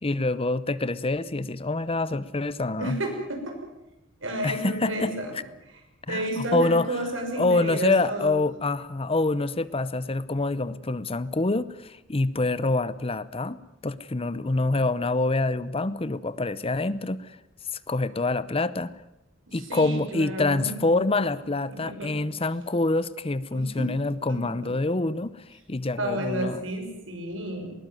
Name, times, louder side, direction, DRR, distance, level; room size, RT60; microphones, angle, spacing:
voice 1, 0.0-3.0 4.4-5.1 6.1-7.0 7.4-17.4 17.9-18.9 19.5-26.6, left 2 dB, 30° left, 17 dB, 0.8 m, -26 dB
voice 2, 2.8-3.6 4.2-5.4 6.1-8.3 19.5-21.0 21.7-22.1 23.5-23.9 24.3-24.8 26.0-27.7, right 1 dB, 75° right, 4 dB, 6.0 m, -32 dB
20.5 x 19.0 x 9.2 m, 0.88 s
head